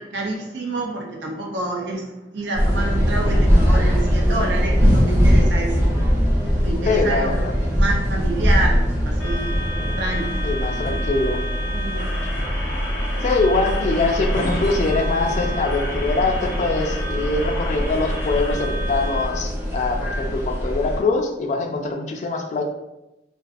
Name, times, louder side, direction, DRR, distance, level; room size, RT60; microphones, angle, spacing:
voice 1, 0.0-5.9 6.6-10.5 11.7-12.1, right 2 dB, 85° right, 0 dB, 0.5 m, -28 dB
sound 1, 2.5-21.0, equal, 15° right, 0.6 m, -21 dB
voice 2, 6.9-7.5 10.4-11.4 13.2-22.6, left 3 dB, 45° left, 3 dB, 0.3 m, -23 dB
sound 2, 9.2-19.2, equal, 80° left, 0.7 m, -33 dB
Bowed string instrument, 14.5-19.9, left 3 dB, 45° right, 0.8 m, -41 dB
2.4 x 2.3 x 2.4 m, 0.94 s
head